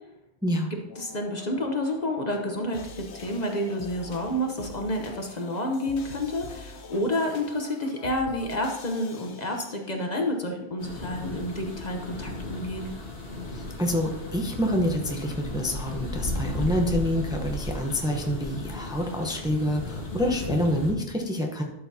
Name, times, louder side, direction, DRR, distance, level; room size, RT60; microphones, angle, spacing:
sound 1, 0.9-10.1, left 4 dB, 90° left, 1.1 m, -45 dB
voice 1, 1.0-12.9, left 1 dB, 40° left, 3 dB, 1.0 m, -29 dB
sound 2, 10.8-20.9, left 2 dB, 60° left, 1.7 m, -35 dB
voice 2, 13.5-21.6, equal, 5° right, 2 dB, 0.8 m, -27 dB
12.0 x 6.9 x 2.8 m, 0.90 s
omnidirectional pair, 1.1 m